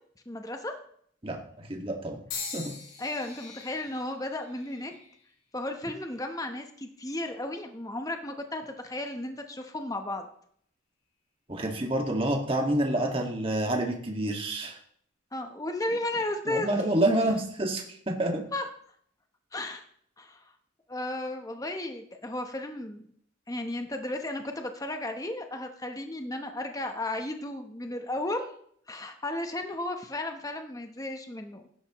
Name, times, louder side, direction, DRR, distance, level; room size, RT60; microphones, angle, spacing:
voice 1, 0.3-0.7 3.0-4.9 5.5-10.3 15.3-16.7 18.5-18.7 19.5-19.8 20.2-20.4 20.9-23.0 23.5-28.5 28.9-31.6, left 1 dB, 15° left, 5 dB, 1.0 m, -34 dB
voice 2, 1.2-2.2 2.5-2.7 11.5-14.7 16.5-18.4, right 1 dB, 25° right, 1 dB, 1.9 m, -28 dB
sound 1, 2.3-6.4 7.1-7.6 8.5-8.7, left 5 dB, 80° left, 4.6 m, -43 dB
16.5 x 11.5 x 3.1 m, 0.64 s
head